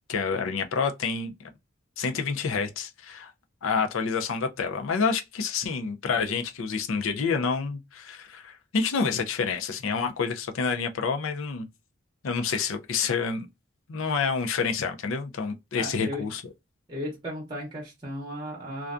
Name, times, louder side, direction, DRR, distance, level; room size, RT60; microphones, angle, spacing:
voice 1, 0.1-1.3 2.0-3.3 3.6-11.7 12.2-13.5 13.9-16.4, left 5 dB, 75° left, 0.5 m, -28 dB
voice 2, 15.8-16.3 16.9-18.9, equal, 25° right, 0.7 m, -35 dB
2.4 x 2.2 x 2.4 m
head